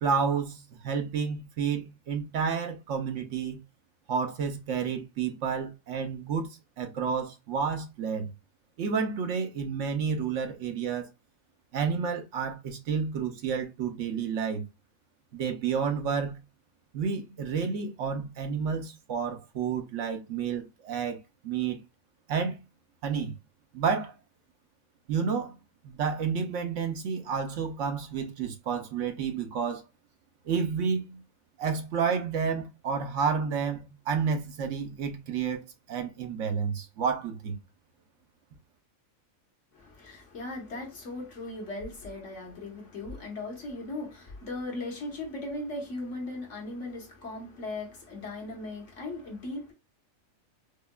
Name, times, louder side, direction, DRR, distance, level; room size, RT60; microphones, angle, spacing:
voice 1, 0.0-3.6 4.1-6.5 6.8-8.3 8.8-11.1 11.7-14.6 15.3-16.4 16.9-21.2 21.4-21.8 22.3-22.6 23.0-23.3 23.7-24.2 25.1-25.5 25.8-29.8 30.4-31.2 31.6-37.6, right 6 dB, 70° right, 0.9 m, -30 dB
voice 2, 39.7-49.7, left 2 dB, 60° left, 1.4 m, -38 dB
4.9 x 2.3 x 2.2 m
omnidirectional pair, 1.4 m